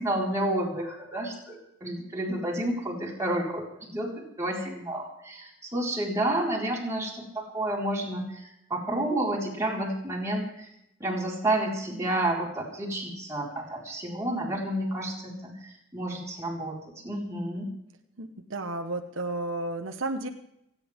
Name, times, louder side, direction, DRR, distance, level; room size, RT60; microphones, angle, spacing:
voice 1, 0.0-10.7 11.0-17.7, right 1 dB, 15° right, -4 dB, 4.7 m, -30 dB
voice 2, 18.2-20.3, right 2 dB, 80° right, 5 dB, 1.3 m, -32 dB
30.0 x 10.5 x 3.7 m, 0.79 s
head